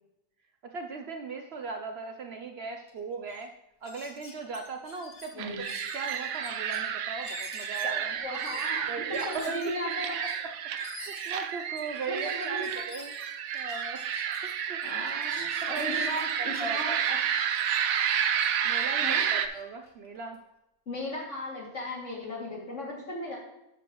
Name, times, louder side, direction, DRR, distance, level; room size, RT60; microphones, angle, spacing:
voice 1, 0.6-3.5 3.8-5.3 5.9-8.2 8.5-8.6 8.9-9.6 10.8-13.1 13.5-14.0 14.4-14.8 15.6-16.0 16.4-17.1 18.6-20.4, right 4 dB, 60° right, 5 dB, 0.8 m, -38 dB
sound 1, 2.9-3.0 3.3-3.4 3.8-6.8 7.2-14.5 14.8-17.1 17.5-20.4, left 3 dB, 75° left, 1.8 m, -48 dB
sound 2, 5.4-19.5, right 8 dB, 85° right, 1.1 m, -31 dB
voice 2, 7.8-8.9 9.2-10.1 12.1-12.8 14.8-17.6 19.0-19.2 20.9-23.4, left 1 dB, 60° left, -3 dB, 2.8 m, -36 dB
12.0 x 6.4 x 3.0 m, 0.88 s
omnidirectional pair, 1.4 m